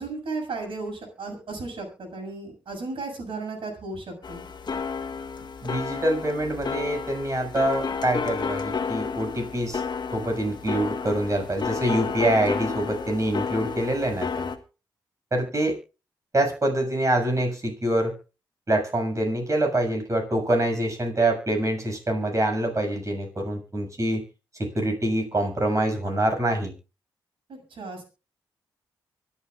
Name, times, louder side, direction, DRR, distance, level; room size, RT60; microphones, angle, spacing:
voice 1, 0.0-4.4 27.5-28.0, right 3 dB, 65° right, 3 dB, 7.1 m, -35 dB
sound 1, 4.2-14.6, left 5 dB, 50° left, 1.6 m, -31 dB
voice 2, 5.6-9.8 10.1-14.5 15.3-15.8 16.3-18.2 18.7-24.2 24.6-26.7, right 1 dB, 35° right, 3 dB, 7.0 m, -25 dB
25.0 x 9.2 x 2.5 m, 0.32 s
supercardioid pair, 45°, 9 cm